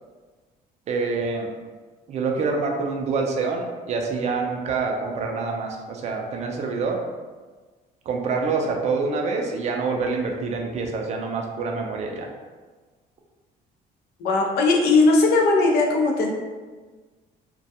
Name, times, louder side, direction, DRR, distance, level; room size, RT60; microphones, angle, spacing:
voice 1, 0.9-1.5 2.1-7.0 8.1-12.3, right 4 dB, 40° right, 1 dB, 0.4 m, -26 dB
voice 2, 14.2-16.3, left 3 dB, 70° left, 0 dB, 0.5 m, -18 dB
2.2 x 2.1 x 2.7 m, 1.4 s
cardioid pair, 110°, 17 cm